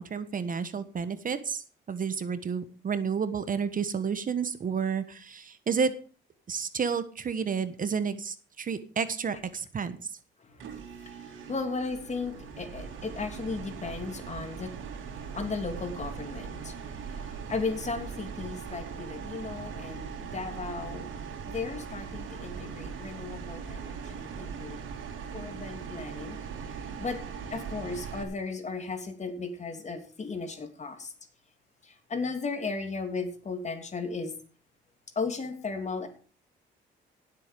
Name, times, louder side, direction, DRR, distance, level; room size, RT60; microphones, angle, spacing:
voice 1, 0.0-5.9 6.5-10.2, right 6 dB, 45° right, 12 dB, 1.2 m, -31 dB
voice 2, 10.4-21.1 21.4-24.8 25.3-26.4 26.7-27.2 27.5-31.1 31.8-34.3 35.1-36.1, left 4 dB, 35° left, 7 dB, 3.0 m, -36 dB
sound 1, 10.6-28.2, right 6 dB, 80° right, 3.2 m, -40 dB
17.0 x 7.9 x 5.2 m, 0.40 s
cardioid pair, 90°, 20 cm